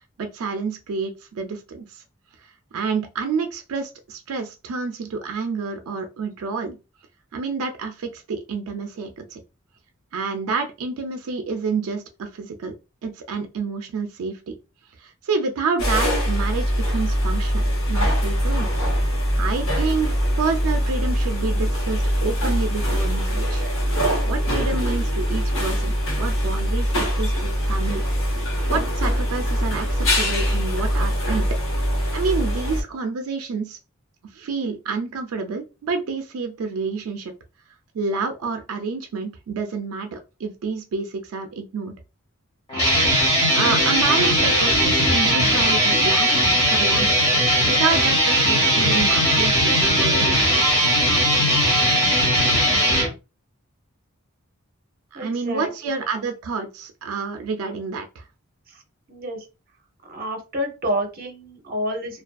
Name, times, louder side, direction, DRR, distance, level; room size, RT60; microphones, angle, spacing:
voice 1, 0.2-2.0 2.7-6.8 7.3-9.4 10.1-12.7 13.0-14.6 15.0-18.7 19.4-20.1 20.4-23.6 24.3-28.0 28.4-31.5 32.1-33.8 34.3-37.3 37.9-41.9 43.5-47.2 47.7-50.8 55.1-58.2, right 4 dB, 90° right, 5 dB, 0.4 m, -28 dB
sound 1, 15.8-32.8, equal, 65° left, 0.9 m, -22 dB
sound 2, 42.7-53.1, equal, 25° left, 1.2 m, -19 dB
voice 2, 55.1-55.7 58.7-58.8 59.1-59.4 60.1-62.2, equal, 45° right, 3 dB, 0.6 m, -29 dB
2.4 x 2.3 x 2.2 m, 0.29 s
head